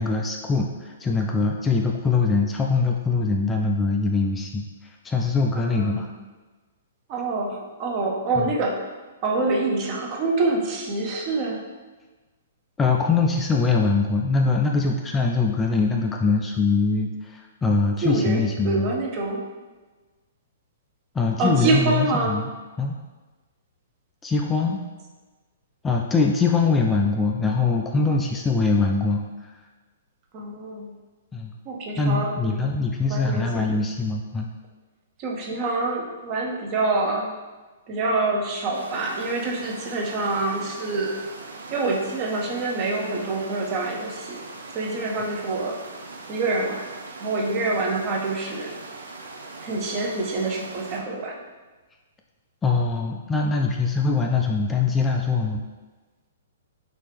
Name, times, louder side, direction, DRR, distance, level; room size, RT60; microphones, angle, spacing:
voice 1, 0.0-4.6 5.0-6.1 8.3-8.5 12.8-18.9 21.1-22.5 22.8-23.0 24.2-24.8 25.8-29.5 31.3-31.5 32.0-34.5 52.6-55.6, left 4 dB, 15° left, 1 dB, 0.3 m, -23 dB
voice 2, 5.5-6.2 7.1-8.9 9.2-11.6 18.0-19.4 21.4-22.4 30.3-30.9 31.7-32.6 33.1-33.7 35.2-37.3 37.9-41.2 41.7-44.4 44.7-45.8 46.3-46.9 47.2-48.7 49.6-51.4, right 3 dB, 35° right, 0 dB, 0.7 m, -26 dB
sound 1, 38.7-51.0, right 3 dB, 80° right, 0.6 m, -40 dB
4.3 x 3.2 x 3.4 m, 1.3 s
hypercardioid pair, 130°, 0 cm